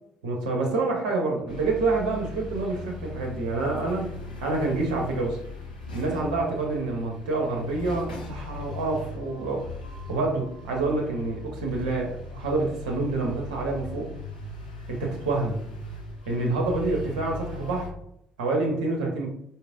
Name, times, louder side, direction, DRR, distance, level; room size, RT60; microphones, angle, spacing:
voice 1, 0.2-4.1 4.4-5.4 5.9-9.7 10.1-14.1 14.9-15.6 16.3-17.9 18.4-19.3, right 3 dB, 75° right, 0 dB, 0.7 m, -27 dB
sound 1, 1.5-17.9, left 2 dB, 90° left, 0.6 m, -39 dB
4.7 x 2.8 x 2.4 m, 0.74 s
figure-of-eight pair, 50°, 4 cm